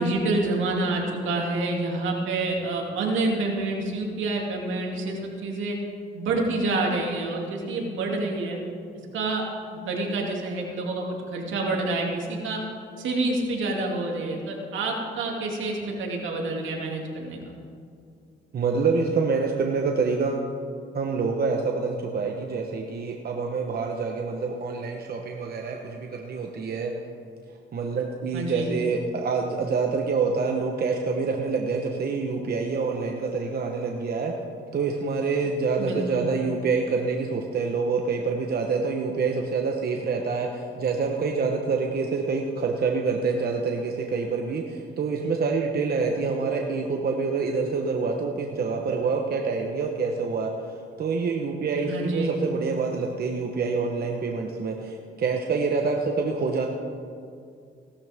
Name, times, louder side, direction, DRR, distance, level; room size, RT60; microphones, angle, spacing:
voice 1, 0.0-5.8 6.1-8.6 9.1-9.4 9.7-12.6 13.0-17.6 28.3-28.7 35.8-36.3 51.8-52.4, right 2 dB, 75° right, 0 dB, 2.6 m, -28 dB
voice 2, 18.5-20.5 20.9-26.9 27.7-34.4 34.7-50.5 51.0-56.7, right 4 dB, 50° right, 2 dB, 1.1 m, -26 dB
17.0 x 12.5 x 3.6 m, 2.3 s
cardioid pair, 90°, 20 cm